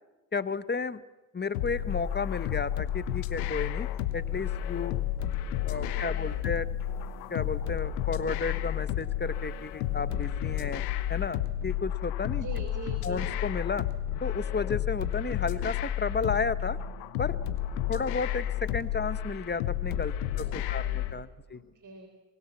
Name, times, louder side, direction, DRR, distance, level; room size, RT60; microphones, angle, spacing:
voice 1, 0.3-1.0 1.3-3.9 4.1-4.9 5.5-6.7 7.3-10.8 11.1-12.5 13.0-13.9 14.2-16.8 17.2-17.4 17.9-21.6, left 4 dB, 20° left, 15 dB, 1.0 m, -33 dB
sound 1, 1.5-21.1, left 11 dB, 90° left, 1.3 m, -31 dB
voice 2, 5.7-6.4 12.4-13.3 20.3-21.2 21.5-22.1, right 3 dB, 40° right, 5 dB, 3.9 m, -44 dB
24.0 x 20.5 x 7.4 m, 1.2 s
supercardioid pair, 65°, 47 cm